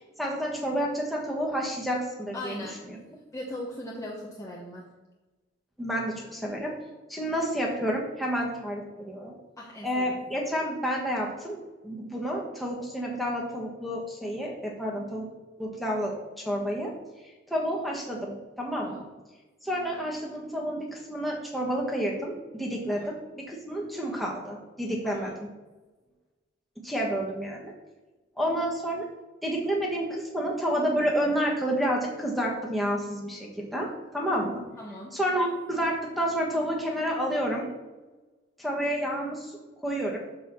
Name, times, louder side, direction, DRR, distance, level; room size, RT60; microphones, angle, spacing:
voice 1, 0.2-2.5 2.9-3.0 5.8-6.7 7.1-9.4 9.8-11.6 11.8-15.3 15.6-16.9 17.5-19.1 19.6-23.0 23.4-25.5 26.8-27.7 28.4-29.1 29.4-34.6 35.1-37.6 38.6-39.5 39.8-40.2, equal, ahead, -3 dB, 1.3 m, -29 dB
voice 2, 2.3-2.9 3.3-4.8 9.6-10.1 18.8-19.0 22.9-23.1 25.0-25.3 33.8-33.9 34.8-35.1, left 1 dB, 15° left, -4 dB, 0.9 m, -39 dB
6.3 x 4.6 x 5.8 m, 1.2 s
head